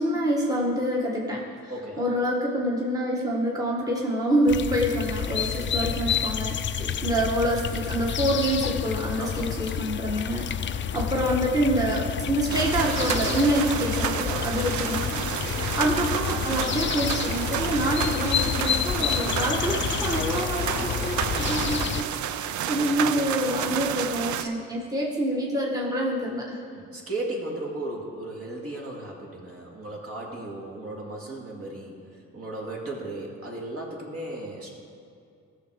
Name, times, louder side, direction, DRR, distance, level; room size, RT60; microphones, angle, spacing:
voice 1, 0.0-1.7 2.0-10.5 10.9-26.6, equal, 10° right, -3 dB, 1.3 m, -27 dB
voice 2, 1.7-2.0 5.5-5.7 6.7-7.0 9.2-9.4 13.1-13.5 13.7-14.6 15.3-15.7 20.0-20.3 24.4-24.5 26.6-32.0 32.3-34.7, right 2 dB, 50° right, -2 dB, 2.3 m, -36 dB
sound 1, 4.5-22.0, left 8 dB, 40° left, 0.4 m, -29 dB
sound 2, 12.5-24.4, right 10 dB, 75° right, 0.5 m, -30 dB
15.0 x 6.5 x 4.9 m, 2.4 s
cardioid pair, 95°, 30 cm